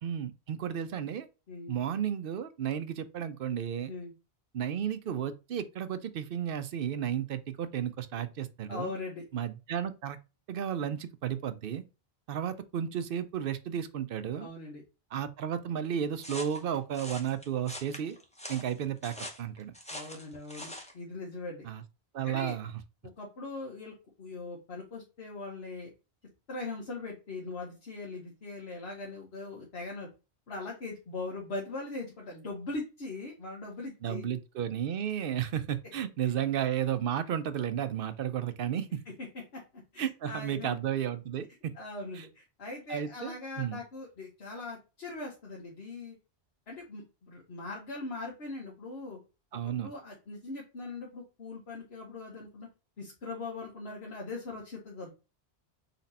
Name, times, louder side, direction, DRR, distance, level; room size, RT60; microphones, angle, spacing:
voice 1, 0.0-1.3 1.7-3.9 4.5-8.9 9.3-10.2 10.5-11.8 12.3-14.5 15.1-18.2 18.5-19.7 21.6-21.8 22.1-22.7 34.0-39.0 40.0-41.8 42.2-42.3 42.9-43.8 49.5-49.9, right 9 dB, 65° right, 0.7 m, -33 dB
voice 2, 1.5-1.8 3.9-4.1 8.7-9.2 14.4-14.8 19.9-21.7 22.2-22.5 23.2-25.9 26.5-30.1 30.5-34.3 39.2-39.6 39.9-40.8 41.7-46.2 46.7-49.2 49.8-52.7 53.0-55.1, left 3 dB, 75° left, 1.5 m, -40 dB
sound 1, 16.2-20.9, left 1 dB, 5° left, 0.7 m, -43 dB
4.2 x 3.0 x 4.1 m
omnidirectional pair, 1.1 m